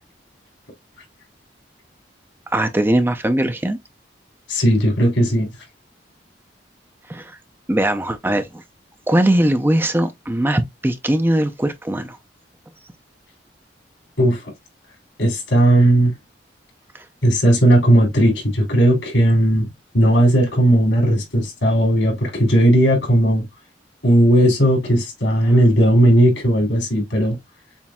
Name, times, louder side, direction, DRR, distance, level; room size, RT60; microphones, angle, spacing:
voice 1, 2.5-3.8 7.1-7.4 7.7-8.6 9.1-12.2 16.9-17.1, right 1 dB, 10° right, 0.5 m, -20 dB
voice 2, 4.5-5.5 14.2-14.5 15.2-16.1 17.2-19.7 19.9-23.4 24.0-27.4, right 1 dB, 85° left, 2.8 m, -16 dB
7.1 x 2.6 x 2.2 m
head